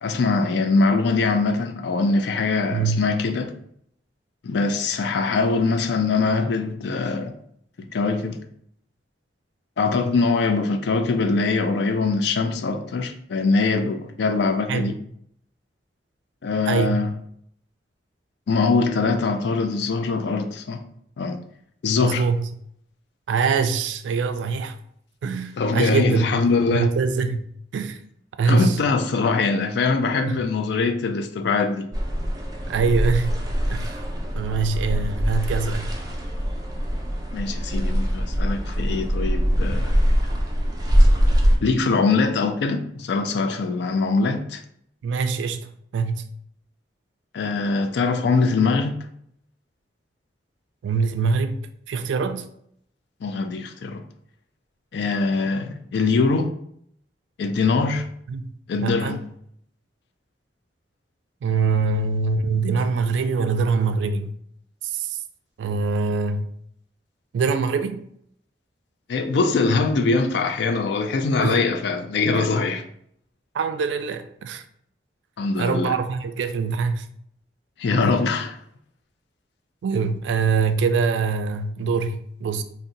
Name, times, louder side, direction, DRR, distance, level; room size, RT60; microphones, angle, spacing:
voice 1, 0.0-3.5 4.4-7.3 7.9-8.4 9.8-15.0 16.4-17.1 18.5-20.8 21.2-21.4 21.8-22.2 25.6-26.9 28.5-31.9 37.3-40.1 41.6-44.6 47.3-49.0 53.2-54.0 54.9-56.5 57.4-58.0 58.7-59.2 69.1-72.8 75.4-76.0 77.8-78.6, left 4 dB, 70° left, 0.4 m, -22 dB
voice 2, 2.7-3.1 14.7-14.9 16.7-17.1 22.0-22.5 23.3-24.8 25.2-26.3 26.7-27.4 27.7-28.0 28.4-28.8 30.2-30.4 32.7-33.4 33.7-34.0 34.4-35.9 45.0-46.3 50.8-51.6 51.9-52.4 58.3-59.2 61.4-64.3 64.9-65.2 65.6-66.5 67.3-68.0 71.4-71.6 72.3-72.7 73.5-74.6 75.6-77.1 78.0-78.2 79.8-82.6, right 5 dB, 80° right, 0.3 m, -24 dB
sound 1, 31.9-41.6, equal, 20° right, 0.5 m, -22 dB
2.6 x 2.1 x 3.7 m
head